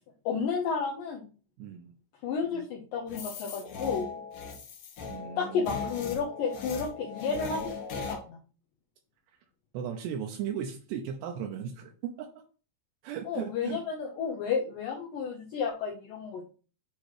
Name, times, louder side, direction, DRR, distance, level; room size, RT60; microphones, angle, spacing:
voice 1, 0.3-1.3 2.2-4.1 5.4-7.6 8.1-8.4 13.3-16.4, left 5 dB, 80° left, -1 dB, 2.0 m, -32 dB
voice 2, 1.6-1.9 5.1-5.8 9.7-12.3 13.0-13.8, right 8 dB, 80° right, 3 dB, 2.7 m, -36 dB
sound 1, 3.1-8.2, left 5 dB, 60° left, 2.4 m, -38 dB
9.0 x 3.0 x 4.8 m, 0.38 s
omnidirectional pair, 5.1 m